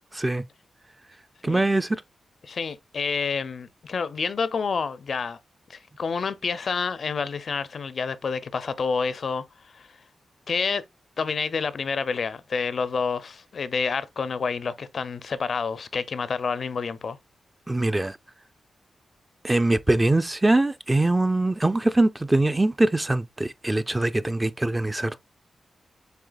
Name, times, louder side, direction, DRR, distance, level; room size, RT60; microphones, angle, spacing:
voice 1, 0.1-0.4 1.4-2.0 17.7-18.2 19.4-25.2, right 2 dB, 15° right, 0.4 m, -22 dB
voice 2, 2.4-5.4 5.7-10.0 10.5-10.8 11.2-17.2, left 5 dB, 60° left, 0.4 m, -28 dB
7.7 x 2.7 x 2.3 m
cardioid pair, 90°, 0 cm